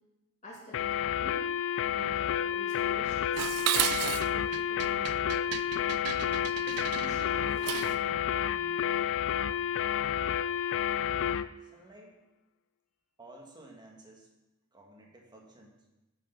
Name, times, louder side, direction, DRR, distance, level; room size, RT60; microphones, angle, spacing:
voice 1, 0.4-1.5 1.9-3.6 4.0-5.6 6.6-9.0, equal, 30° left, -4 dB, 2.2 m, -49 dB
sound 1, 0.7-11.5, left 9 dB, 60° left, 0.4 m, -30 dB
Dishes pots and pans, 3.4-8.1, right 12 dB, 85° right, 0.4 m, -34 dB
voice 2, 11.6-12.2 13.2-14.3 14.7-15.9, right 1 dB, 20° right, 0 dB, 1.6 m, -53 dB
8.6 x 6.5 x 5.7 m, 1.0 s
head